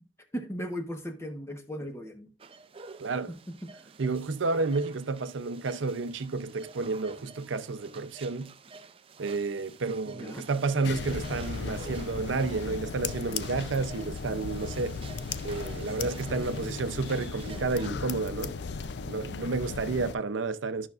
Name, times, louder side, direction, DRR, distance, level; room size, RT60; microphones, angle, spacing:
voice 1, 0.3-2.3 3.3-3.7 10.1-10.4 16.2-16.9, equal, 15° left, 1.0 m, -38 dB
sound 1, 2.4-17.9, right 4 dB, 30° right, 0.4 m, -49 dB
voice 2, 3.0-3.3 4.0-8.5 9.2-15.0 15.4-18.6 19.1-20.9, right 3 dB, 80° right, 0.6 m, -31 dB
sound 2, 10.8-20.1, left 5 dB, 60° left, 0.4 m, -36 dB
12.0 x 5.8 x 2.4 m
head